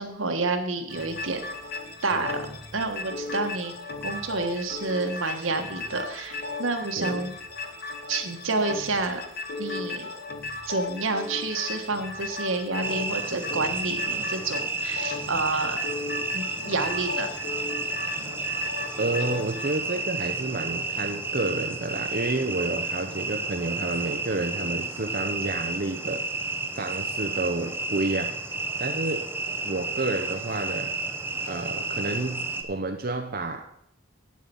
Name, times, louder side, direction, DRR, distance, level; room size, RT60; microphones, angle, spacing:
voice 1, 0.0-1.4 2.0-2.4 2.7-3.7 4.0-7.3 8.1-9.2 9.6-10.1 10.7-15.8 16.3-17.3, right 3 dB, 80° right, 5 dB, 1.5 m, -29 dB
sound 1, 0.9-19.7, left 3 dB, 50° left, 1.2 m, -36 dB
sound 2, 12.8-32.6, right 3 dB, 10° right, 0.8 m, -31 dB
voice 2, 19.0-26.3 26.7-28.4 28.8-29.3 29.6-31.0 31.5-33.7, right 2 dB, 50° right, 4 dB, 0.7 m, -30 dB
8.8 x 7.6 x 7.0 m, 0.71 s
head